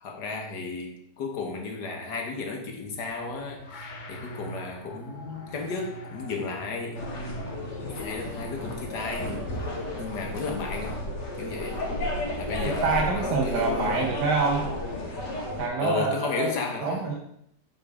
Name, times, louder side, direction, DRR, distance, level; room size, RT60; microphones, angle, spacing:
voice 1, 0.0-7.0 7.9-11.1 11.4-11.9 12.4-14.1 15.8-17.0, left 4 dB, 75° left, 2 dB, 1.8 m, -34 dB
sound 1, 3.0-8.5, equal, 45° left, 0.6 m, -42 dB
sound 2, 6.9-15.7, left 1 dB, 90° left, 2.4 m, -33 dB
voice 2, 12.8-14.7 15.6-16.5 16.8-17.1, right 4 dB, 75° right, -1 dB, 1.5 m, -26 dB
7.8 x 4.3 x 4.8 m, 0.74 s
omnidirectional pair, 1.8 m